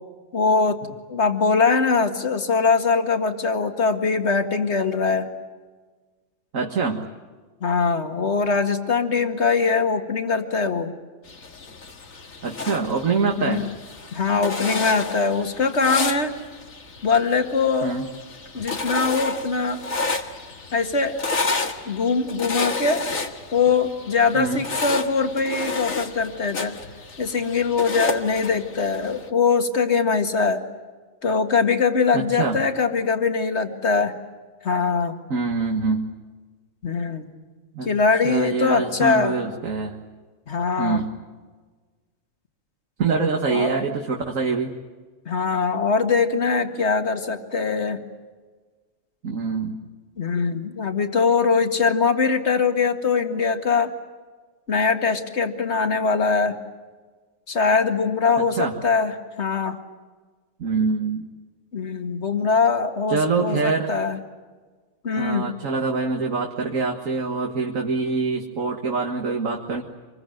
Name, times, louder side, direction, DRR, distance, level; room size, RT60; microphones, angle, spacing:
voice 1, 0.3-5.3 7.6-10.9 13.4-13.6 14.1-16.3 17.0-17.9 18.5-19.8 20.7-21.2 21.9-23.0 23.5-26.7 27.2-30.6 31.2-34.2 34.6-35.2 36.8-37.3 37.8-39.4 40.5-41.0 43.5-43.7 45.3-48.0 50.2-53.9 54.7-56.6 57.5-59.8 61.7-64.2 65.0-65.5, left 5 dB, 55° left, 6 dB, 2.2 m, -22 dB
voice 2, 6.5-7.1 12.4-13.6 17.8-18.1 24.3-24.6 32.1-32.6 35.3-36.1 37.7-37.9 38.2-40.0 40.8-41.1 43.0-44.7 49.2-49.8 58.4-58.7 60.6-61.3 63.1-63.9 65.2-69.8, right 4 dB, 85° right, 2 dB, 2.1 m, -24 dB
sound 1, 11.3-29.3, left 3 dB, 90° left, 2.2 m, -31 dB
26.5 x 22.0 x 9.2 m, 1.4 s
omnidirectional pair, 1.4 m